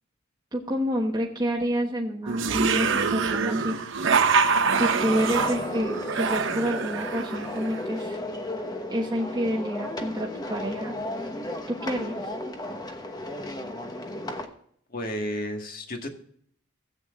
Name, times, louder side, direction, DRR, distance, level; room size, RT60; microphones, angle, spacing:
voice 1, 0.5-3.8 4.7-8.2 8.9-10.9 11.7-12.3, equal, 20° right, -3 dB, 1.1 m, -28 dB
sound 1, 2.3-7.8, right 5 dB, 65° right, 0.8 m, -25 dB
sound 2, 5.0-14.5, left 1 dB, 20° left, 1.0 m, -34 dB
voice 2, 14.9-16.1, left 1 dB, 45° left, 4 dB, 1.6 m, -32 dB
16.5 x 8.2 x 2.4 m, 0.65 s
head